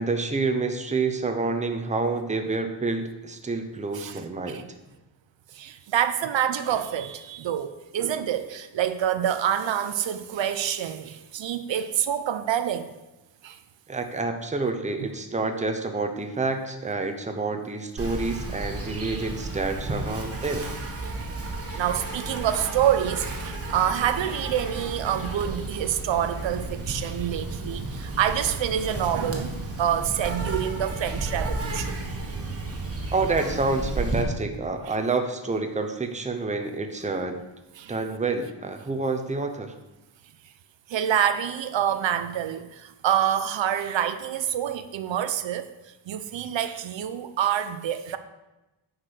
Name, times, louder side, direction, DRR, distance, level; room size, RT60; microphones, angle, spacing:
voice 1, 0.0-4.7 13.9-20.7 33.1-37.4 37.9-39.7, right 3 dB, 15° right, 6 dB, 0.8 m, -28 dB
voice 2, 5.5-12.9 13.4-13.6 20.1-20.2 21.8-31.9 37.8-38.0 40.9-45.7 46.1-48.2, right 10 dB, 90° right, 10 dB, 0.8 m, -27 dB
Insect, 18.0-34.2, right 2 dB, 30° right, 1.5 m, -33 dB
9.7 x 4.8 x 6.5 m, 1.0 s
wide cardioid pair, 165°, 44 cm